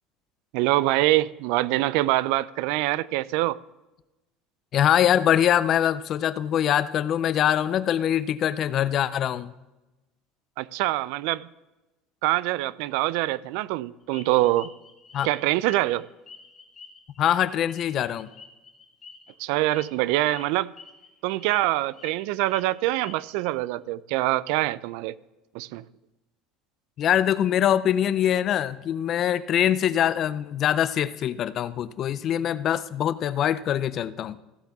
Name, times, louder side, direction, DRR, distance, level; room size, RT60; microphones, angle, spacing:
voice 1, 0.5-3.6 10.6-11.5 12.2-14.7 15.2-16.1 19.4-20.7 21.2-25.1 25.5-25.8, right 17 dB, 70° right, 0.3 m, -24 dB
voice 2, 4.7-9.5 15.1-15.3 17.2-18.3 27.0-34.4, left 10 dB, 40° left, 0.4 m, -23 dB
sound 1, 14.1-16.0 16.3-19.3 19.7-19.9 20.2-20.4 20.8-21.1 21.4-22.1 22.4-23.5, left 5 dB, 25° left, 1.2 m, -47 dB
15.5 x 7.8 x 3.5 m
cardioid pair, 150°, 0 cm